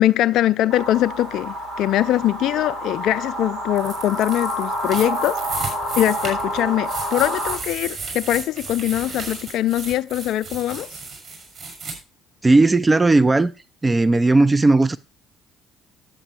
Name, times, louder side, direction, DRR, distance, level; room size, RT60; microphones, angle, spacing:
voice 1, 0.0-10.9, left 13 dB, 60° left, 0.5 m, -22 dB
sound 1, 0.7-7.6, equal, 85° right, 2.3 m, -28 dB
sound 2, 3.7-11.9, right 4 dB, 50° right, 6.0 m, -34 dB
voice 2, 12.4-13.5 13.8-15.0, right 2 dB, 20° right, 0.5 m, -16 dB
10.5 x 8.1 x 4.4 m
hypercardioid pair, 50°, 0 cm